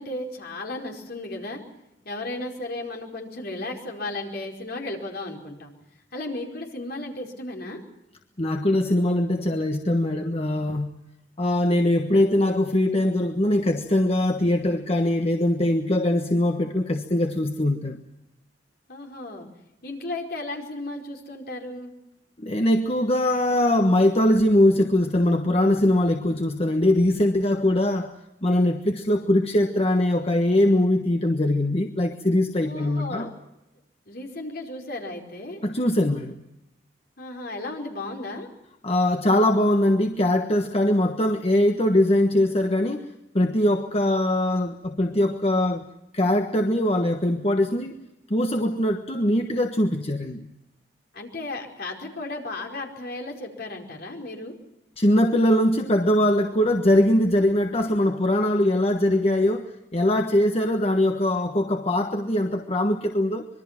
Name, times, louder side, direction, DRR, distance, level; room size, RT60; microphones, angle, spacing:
voice 1, 0.0-1.6 2.0-5.7 6.1-7.8 18.9-19.5 19.8-21.9 32.6-33.3 34.1-35.6 37.2-38.5 51.1-54.5, left 2 dB, 60° left, 1 dB, 5.0 m, -34 dB
voice 2, 8.4-10.9 11.4-18.0 22.4-33.3 35.6-36.3 38.8-45.9 46.1-48.0 48.3-50.5 55.0-63.5, left 1 dB, 35° left, 5 dB, 1.4 m, -22 dB
25.5 x 23.0 x 6.0 m, 0.87 s
head